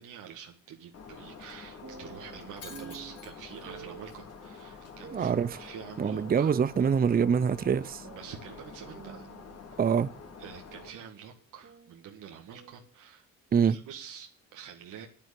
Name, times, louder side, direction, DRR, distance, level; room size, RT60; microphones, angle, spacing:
voice 1, 0.0-5.3 5.6-6.5 8.2-9.3 9.7-9.8 10.4-13.3 13.6-15.1, right 8 dB, 85° right, 1.9 m, -47 dB
Shatter, 0.9-10.9, left 5 dB, 55° left, 3.4 m, -47 dB
sound 1, 1.8-3.2 3.7-4.2 5.0-6.7 7.1-8.7 8.9-11.1 11.4-12.9, right 6 dB, 45° right, 2.4 m, -50 dB
voice 2, 5.1-5.6 6.0-8.0 9.8-10.1 13.5-13.8, right 7 dB, 30° right, 0.6 m, -25 dB
9.4 x 9.4 x 9.7 m
cardioid pair, 90°, 30 cm